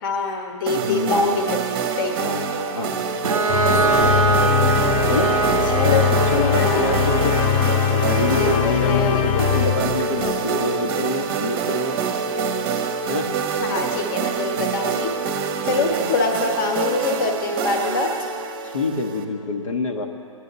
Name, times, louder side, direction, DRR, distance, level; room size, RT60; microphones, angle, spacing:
voice 1, 0.0-2.4 3.7-4.2 5.7-6.2 6.6-7.0 8.3-9.3 13.6-15.1 15.6-18.2, left 3 dB, 40° left, 5 dB, 1.2 m, -25 dB
voice 2, 0.7-1.3 2.2-3.0 3.8-4.2 5.1-5.3 5.8-7.3 7.9-11.9 13.1-13.3 15.6-16.1 18.6-20.1, left 2 dB, 75° left, 2 dB, 1.4 m, -26 dB
sound 1, 0.7-19.2, right 6 dB, 25° right, 0.8 m, -26 dB
Bowed string instrument, 3.2-8.8, right 4 dB, 80° right, 0.5 m, -23 dB
sound 2, 3.5-10.5, left 10 dB, 20° left, 0.3 m, -22 dB
19.5 x 10.0 x 4.0 m, 2.4 s
figure-of-eight pair, 125°, 17 cm